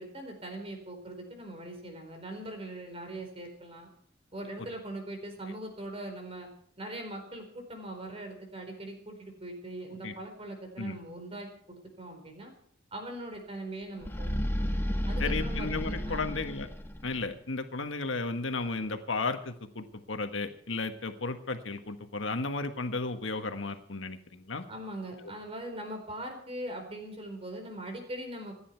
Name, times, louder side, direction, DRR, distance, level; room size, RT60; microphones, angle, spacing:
voice 1, 0.0-3.9 4.3-6.5 6.8-12.5 12.9-14.7 15.1-16.3 24.7-28.5, right 1 dB, 30° right, 4 dB, 4.3 m, -41 dB
sound 1, 14.0-17.3, equal, 10° left, 1.2 m, -32 dB
voice 2, 15.2-16.7 17.0-24.6, left 3 dB, 80° left, 7 dB, 1.5 m, -34 dB
27.0 x 10.5 x 4.6 m, 0.63 s
head